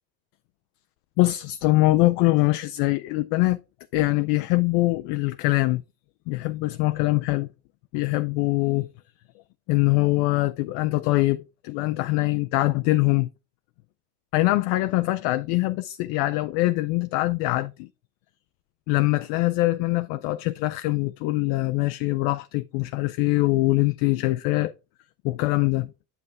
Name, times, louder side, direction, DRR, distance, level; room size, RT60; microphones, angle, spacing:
voice 1, 1.2-3.6 3.9-5.8 6.3-7.5 7.9-8.9 9.7-13.3 14.3-17.9 18.9-24.7 25.2-25.9, left 19 dB, 60° left, 0.6 m, -23 dB
9.4 x 5.6 x 3.4 m
supercardioid pair, 110°, 47 cm